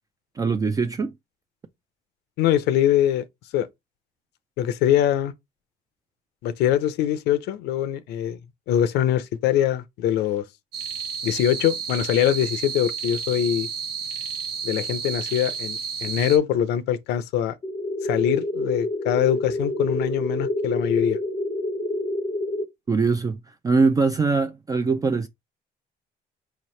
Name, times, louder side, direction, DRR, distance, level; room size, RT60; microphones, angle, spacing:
voice 1, 0.4-1.1 22.9-25.3, right 4 dB, 20° right, 0.3 m, -22 dB
voice 2, 2.4-3.2 3.5-3.7 4.6-5.3 6.4-8.4 8.7-10.4 11.2-13.7 14.6-17.5 18.0-21.2, left 10 dB, 80° left, 0.5 m, -23 dB
sound 1, 10.7-16.4, right 6 dB, 75° right, 0.8 m, -31 dB
sound 2, 17.6-22.6, left 1 dB, 25° left, 0.6 m, -27 dB
4.7 x 2.9 x 3.1 m
cardioid pair, 110°, 17 cm